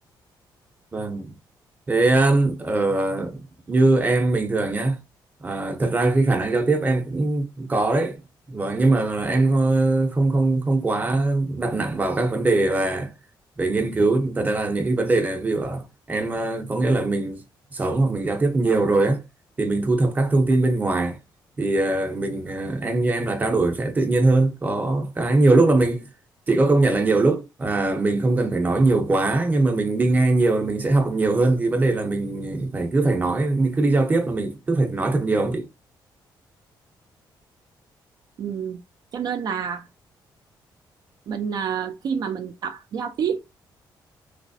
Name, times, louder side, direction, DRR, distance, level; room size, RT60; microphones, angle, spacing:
voice 1, 0.9-1.3 1.9-5.0 5.4-8.2 8.5-13.1 13.6-17.4 17.7-19.2 19.6-21.2 21.6-26.1 26.5-35.6, right 2 dB, 20° right, 0.8 m, -21 dB
voice 2, 38.4-38.8 39.1-39.9 41.3-43.4, right 7 dB, 55° right, 0.5 m, -28 dB
3.3 x 3.0 x 2.7 m
cardioid pair, 125°, 8 cm